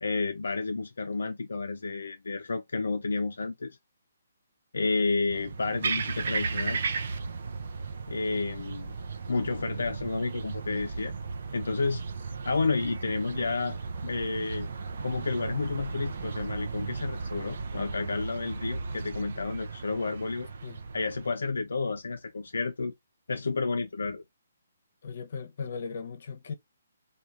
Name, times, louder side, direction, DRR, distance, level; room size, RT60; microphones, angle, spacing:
voice 1, 0.0-3.8 4.7-6.8 8.1-8.9 9.3-11.1 11.5-12.0 12.4-13.8 14.0-14.7 15.0-20.5 20.9-22.9 23.3-24.2, left 3 dB, 85° left, 0.4 m, -31 dB
sound 1, 5.3-21.3, right 4 dB, 60° right, 0.5 m, -35 dB
voice 2, 25.0-26.5, left 5 dB, 55° left, 0.7 m, -37 dB
3.1 x 2.3 x 2.4 m
hypercardioid pair, 155°, 0 cm